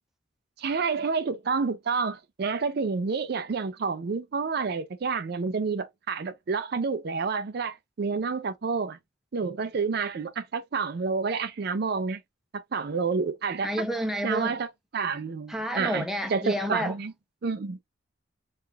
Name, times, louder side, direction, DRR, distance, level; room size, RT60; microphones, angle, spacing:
voice 1, 0.6-9.0 9.3-12.2 12.5-13.7 14.2-17.1 17.4-17.8, right 5 dB, 50° right, 0.4 m, -29 dB
voice 2, 13.6-14.6 15.5-16.9, equal, ahead, 0.5 m, -30 dB
3.7 x 2.4 x 2.7 m
head